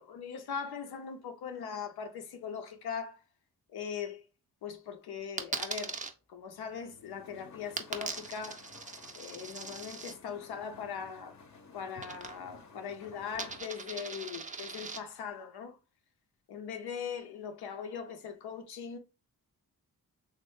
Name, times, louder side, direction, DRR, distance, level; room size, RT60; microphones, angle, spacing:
voice 1, 0.0-3.2 3.7-4.3 4.6-6.0 6.3-8.7 9.2-11.4 11.7-15.8 16.5-19.0, left 7 dB, 85° left, 0.5 m, -40 dB
Coin (dropping), 5.4-6.1 7.8-10.1 12.0-12.6 12.9-15.0, right 4 dB, 20° right, 0.4 m, -40 dB
sound 1, 6.6-13.6, left 4 dB, 50° left, 0.7 m, -55 dB
3.1 x 2.0 x 3.0 m
cardioid pair, 80°, 37 cm